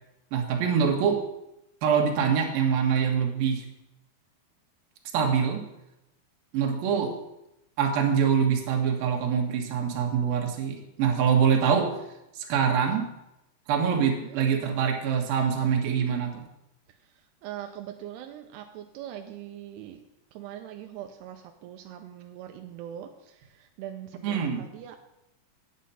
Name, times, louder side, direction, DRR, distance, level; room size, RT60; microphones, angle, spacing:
voice 1, 0.3-1.2 1.8-3.6 5.1-5.6 6.5-7.1 7.8-11.9 12.3-13.1 13.7-16.4 24.2-24.6, right 7 dB, 70° right, 2 dB, 3.1 m, -24 dB
voice 2, 13.9-14.4 17.0-17.1 17.4-20.0 20.3-25.0, right 11 dB, 85° right, 5 dB, 2.8 m, -42 dB
9.5 x 8.3 x 5.6 m, 0.87 s
omnidirectional pair, 4.7 m